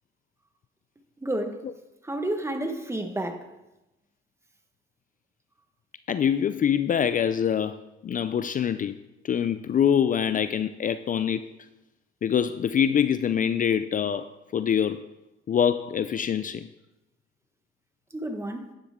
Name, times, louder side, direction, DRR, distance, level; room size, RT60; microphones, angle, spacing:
voice 1, 1.2-1.6 2.0-3.5 18.1-18.7, right 1 dB, 15° right, 1.4 m, -30 dB
voice 2, 6.1-7.8 8.0-8.9 9.2-11.4 12.2-15.0 15.5-16.7, left 8 dB, 40° left, 0.4 m, -24 dB
11.0 x 9.9 x 3.7 m
cardioid pair, 90°, 20 cm